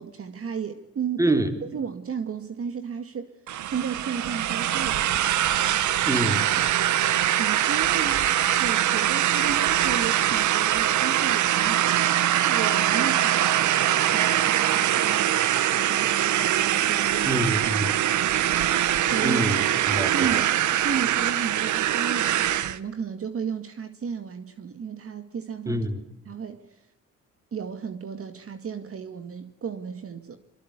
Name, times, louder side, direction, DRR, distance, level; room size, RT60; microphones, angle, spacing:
voice 1, 0.0-3.4 3.6-5.2 5.9-6.0 7.3-8.3 8.6-11.9 12.4-17.5 19.0-19.4 20.1-25.8 26.3-26.9 27.5-30.4, right 7 dB, 50° right, 2.1 m, -34 dB
voice 2, 1.2-1.5 6.1-6.4 17.3-17.9 19.2-20.4 25.7-26.0, right 1 dB, 10° right, 3.9 m, -26 dB
sound 1, 3.5-22.8, right 12 dB, 75° right, 1.3 m, -23 dB
25.5 x 23.5 x 8.3 m
cardioid pair, 90°, 30 cm